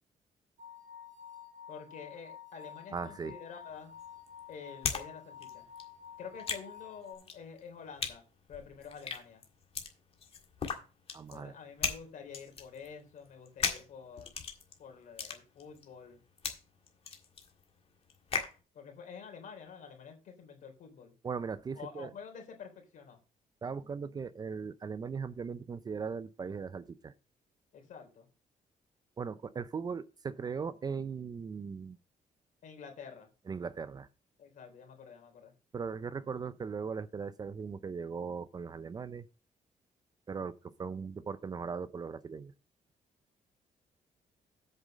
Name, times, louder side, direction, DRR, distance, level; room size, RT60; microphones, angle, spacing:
sound 1, 0.6-7.1, left 8 dB, 60° right, 1.6 m, -50 dB
voice 1, 1.7-3.9 4.5-5.7 6.2-8.2 8.5-9.4 11.3-14.3 14.8-16.2 18.7-21.1 21.7-23.2 27.7-28.3 32.6-33.3 34.4-35.5, left 6 dB, 70° left, 3.4 m, -48 dB
voice 2, 2.9-3.3 11.1-11.5 21.2-22.1 23.6-27.1 29.2-32.0 33.5-34.1 35.7-39.3 40.3-42.5, right 5 dB, 30° right, 0.5 m, -39 dB
sound 2, 3.6-5.1 5.3-18.6, left 6 dB, 45° left, 1.8 m, -39 dB
8.2 x 5.3 x 6.4 m
cardioid pair, 145°, 14 cm